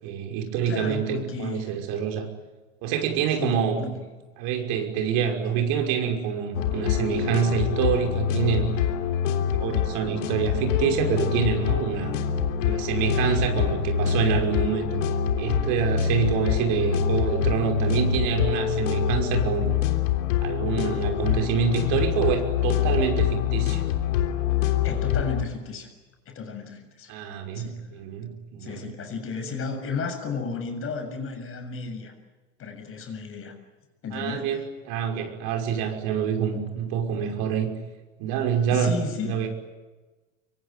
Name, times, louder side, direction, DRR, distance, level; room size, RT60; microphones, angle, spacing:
voice 1, 0.0-2.3 2.8-3.9 4.4-8.7 9.6-12.2 12.6-15.0 15.4-19.7 20.4-23.8 27.1-28.9 34.1-37.7 38.2-39.0 39.2-39.5, right 8 dB, 55° right, 4 dB, 5.9 m, -26 dB
voice 2, 0.7-1.8 3.3-4.0 24.8-25.9 26.3-27.1 27.5-27.8 28.6-32.1 32.6-33.5 34.0-34.5 38.7-39.4, left 5 dB, 35° left, 6 dB, 7.2 m, -33 dB
sound 1, 6.5-25.4, left 8 dB, 80° left, 3.3 m, -25 dB
25.5 x 24.0 x 9.5 m, 1.2 s
hypercardioid pair, 110°, 39 cm